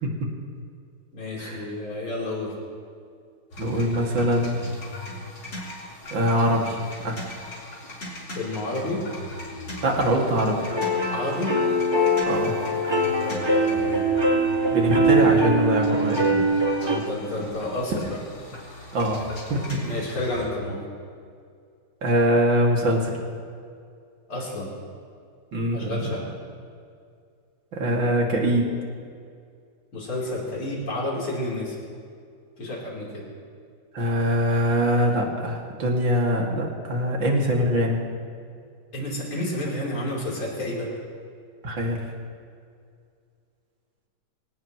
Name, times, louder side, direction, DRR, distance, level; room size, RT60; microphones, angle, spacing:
voice 1, 1.1-2.5 8.3-9.0 11.1-11.5 13.2-14.0 16.8-18.0 19.8-20.8 24.3-24.7 25.7-26.2 29.9-31.7 32.6-33.2 38.9-40.9, left 1 dB, 80° left, -5 dB, 4.7 m, -30 dB
sound 1, 3.5-20.5, left 1 dB, 60° left, 4.7 m, -38 dB
voice 2, 3.6-4.6 6.1-7.2 9.8-10.6 12.2-12.5 14.7-16.2 18.9-19.8 22.0-23.2 25.5-26.2 27.7-28.7 33.9-38.0 41.6-42.0, equal, 65° right, -1 dB, 3.1 m, -23 dB
sound 2, 10.7-17.0, right 1 dB, 15° right, 1.0 m, -22 dB
24.5 x 18.5 x 3.1 m, 2.3 s
omnidirectional pair, 2.2 m